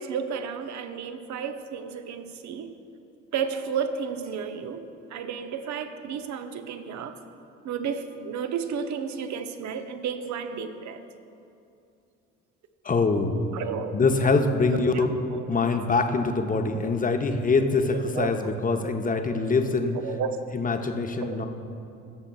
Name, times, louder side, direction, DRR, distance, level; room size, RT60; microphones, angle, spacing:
voice 1, 0.0-2.7 3.3-4.9 5.1-7.1 7.6-11.0 13.5-14.0 14.9-15.1 15.3-15.6 18.1-18.3 20.0-20.4 21.2-21.4, right 6 dB, 50° right, 8 dB, 0.7 m, -32 dB
voice 2, 12.8-13.4 13.9-15.1 15.5-19.9 20.5-21.5, left 3 dB, 20° left, 6 dB, 0.8 m, -24 dB
17.5 x 6.9 x 2.3 m, 2.6 s
hypercardioid pair, 50°, 37 cm